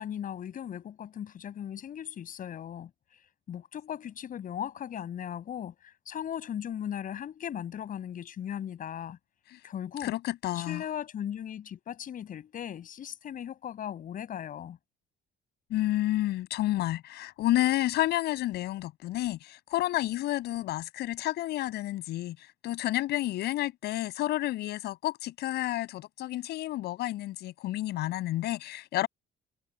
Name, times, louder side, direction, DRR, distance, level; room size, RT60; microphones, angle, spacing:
voice 1, 0.0-2.9 3.5-9.2 9.6-10.1 10.5-14.8, left 9 dB, 55° left, 7.5 m, -38 dB
voice 2, 10.0-10.8 15.7-22.4 22.6-29.1, left 15 dB, 75° left, 6.7 m, -30 dB
cardioid pair, 110°, 17 cm